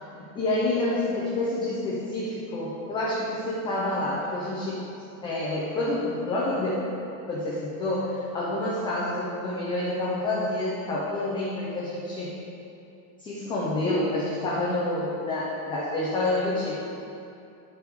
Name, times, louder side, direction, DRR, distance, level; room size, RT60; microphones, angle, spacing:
voice 1, 0.3-4.8 5.2-6.9 7.3-12.3 13.2-16.8, left 2 dB, 10° left, -7 dB, 0.3 m, -28 dB
9.8 x 4.6 x 3.4 m, 2.7 s
supercardioid pair, 145°, 47 cm